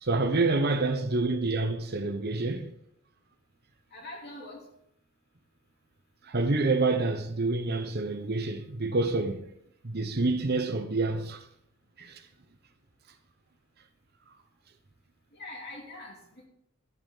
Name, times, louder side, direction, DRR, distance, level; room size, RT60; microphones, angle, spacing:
voice 1, 0.0-2.7 6.3-9.4 9.8-11.4 12.0-12.2, right 3 dB, 50° right, 1.0 m, -27 dB
voice 2, 3.9-4.7 15.3-16.5, left 2 dB, 50° left, 2.6 m, -44 dB
12.5 x 5.9 x 5.6 m
head